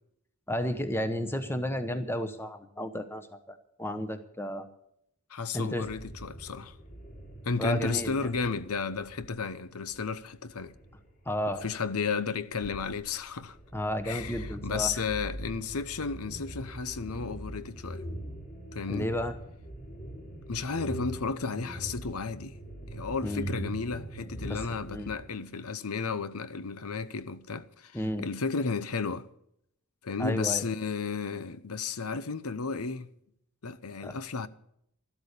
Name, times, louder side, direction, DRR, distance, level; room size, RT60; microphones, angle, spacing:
voice 1, 0.5-4.7 5.5-5.9 7.6-8.3 11.3-11.6 13.7-15.0 18.9-19.4 23.2-23.7 24.4-25.1 27.9-28.3 30.2-30.6 34.0-34.2, equal, 10° left, 1.0 m, -32 dB
voice 2, 5.3-6.7 7.4-10.7 11.6-13.6 14.0-18.0 18.7-19.1 20.5-22.5 22.9-29.3 30.0-33.1 33.6-34.5, left 5 dB, 80° left, 0.9 m, -33 dB
sound 1, 5.8-25.1, right 1 dB, 40° left, 5.1 m, -42 dB
13.0 x 12.5 x 6.8 m
head